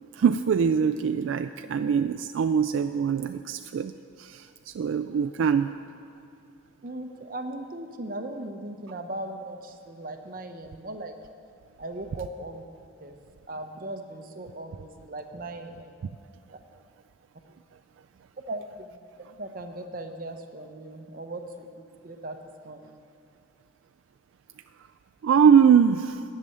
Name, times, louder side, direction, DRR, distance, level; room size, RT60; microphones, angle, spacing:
voice 1, 0.1-3.9 4.2-5.8 25.2-26.2, right 7 dB, 75° right, 8 dB, 0.3 m, -22 dB
voice 2, 6.8-11.2 11.8-12.7 13.0-13.1 13.5-16.0 18.5-23.0, right 1 dB, 45° right, 6 dB, 0.8 m, -38 dB
10.5 x 6.8 x 8.5 m, 2.5 s
head